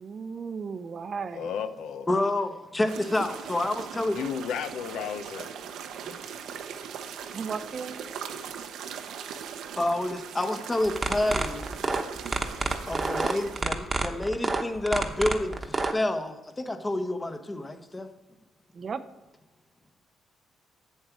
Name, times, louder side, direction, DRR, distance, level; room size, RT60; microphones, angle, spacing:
voice 1, 0.0-1.5 7.3-8.0 18.7-19.0, right 5 dB, 45° right, 11 dB, 0.6 m, -35 dB
voice 2, 1.3-2.1 4.1-5.5, left 7 dB, 80° left, 10 dB, 0.6 m, -33 dB
voice 3, 2.1-4.2 6.0-6.1 9.8-11.6 12.9-18.1, left 1 dB, 20° left, 8 dB, 1.0 m, -28 dB
sound 1, 2.9-13.6, right 7 dB, 80° right, 0.7 m, -40 dB
sound 2, 10.9-15.9, right 3 dB, 25° right, 1.0 m, -27 dB
8.0 x 7.5 x 4.7 m, 1.1 s
cardioid pair, 90°, 0 cm